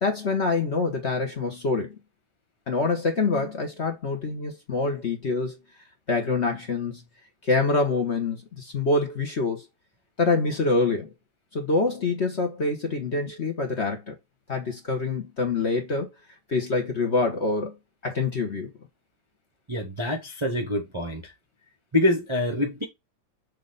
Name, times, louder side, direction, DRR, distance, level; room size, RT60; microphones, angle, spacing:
voice 1, 0.0-2.0 2.7-5.6 6.1-7.0 7.4-9.6 10.2-11.1 11.5-14.2 14.5-16.1 16.5-17.8 18.0-18.7, left 3 dB, 40° left, 1.2 m, -25 dB
voice 2, 19.7-21.3 21.9-22.8, left 1 dB, 20° right, 0.9 m, -25 dB
6.5 x 3.7 x 3.9 m
omnidirectional pair, 2.1 m